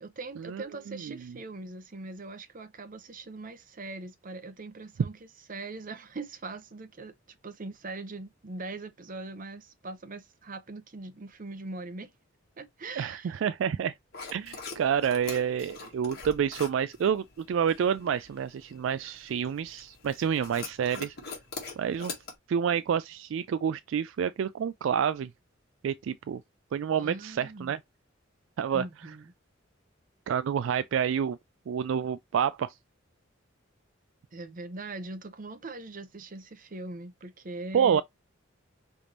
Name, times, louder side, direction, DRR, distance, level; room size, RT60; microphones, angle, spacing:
voice 1, 0.0-5.2 5.5-12.1 12.6-13.3 27.0-27.7 28.7-29.3 34.3-38.0, right 3 dB, 40° right, 0.7 m, -41 dB
voice 2, 13.0-13.9 14.3-21.2 21.8-22.1 22.5-25.3 25.8-26.4 26.7-27.8 28.6-28.8 30.3-31.4 31.7-32.7 37.7-38.0, right 8 dB, 70° right, 0.3 m, -28 dB
sound 1, 14.1-22.3, left 4 dB, 50° left, 1.8 m, -44 dB
5.0 x 3.5 x 2.9 m
head